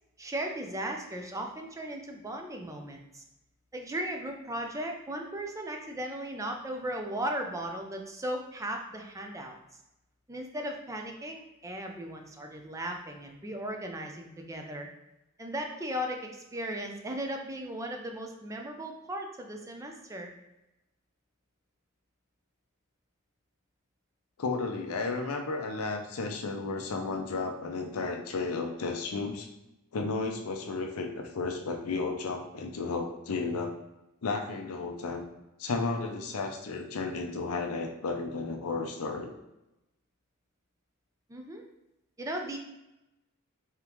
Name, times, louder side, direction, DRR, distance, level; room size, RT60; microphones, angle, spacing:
voice 1, 0.2-3.2 3.7-9.6 10.3-14.9 15.4-20.3 41.3-41.7 42.2-42.6, right 1 dB, 15° right, 2 dB, 0.5 m, -37 dB
voice 2, 24.4-29.5 29.9-33.8 34.2-35.3 35.6-39.3, left 3 dB, 85° left, 3 dB, 0.5 m, -33 dB
3.6 x 3.4 x 3.0 m, 0.92 s
head